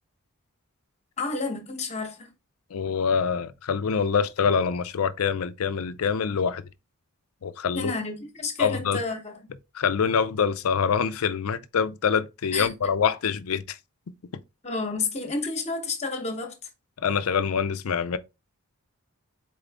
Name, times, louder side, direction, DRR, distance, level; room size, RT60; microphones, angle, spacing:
voice 1, 1.2-2.3 7.7-9.3 12.5-12.7 14.6-16.5, left 3 dB, 30° left, 0.9 m, -30 dB
voice 2, 2.7-6.6 7.4-7.9 8.6-9.0 9.7-13.8 17.0-18.2, left 6 dB, 75° left, 0.5 m, -25 dB
4.2 x 3.7 x 3.4 m
head